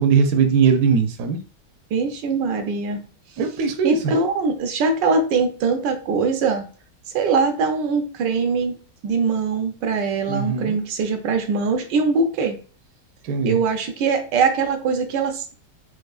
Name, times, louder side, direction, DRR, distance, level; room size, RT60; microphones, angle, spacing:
voice 1, 0.0-1.4 3.4-4.1 10.3-10.8 13.2-13.6, right 6 dB, 70° right, 5 dB, 0.9 m, -20 dB
voice 2, 1.9-3.0 3.8-6.7 7.1-8.8 9.0-12.6 13.4-15.6, right 4 dB, 85° right, 6 dB, 1.3 m, -22 dB
4.7 x 2.3 x 2.3 m, 0.39 s
omnidirectional pair, 1.9 m